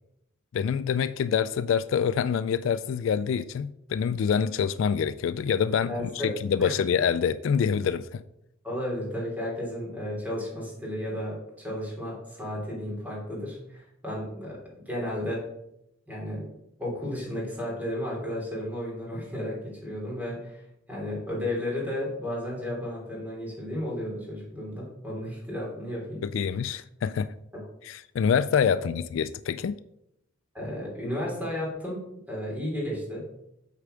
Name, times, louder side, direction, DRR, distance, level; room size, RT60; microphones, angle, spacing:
voice 1, 0.5-8.2 26.2-27.3 27.8-29.8, left 7 dB, 70° left, 14 dB, 0.3 m, -26 dB
voice 2, 5.9-6.3 6.6-6.7 8.6-14.6 14.8-15.4 16.1-16.5 16.8-20.6 20.9-26.3 28.6-28.8 30.5-33.3, left 1 dB, 10° right, -4 dB, 3.0 m, -33 dB
8.4 x 4.6 x 5.0 m, 0.82 s
head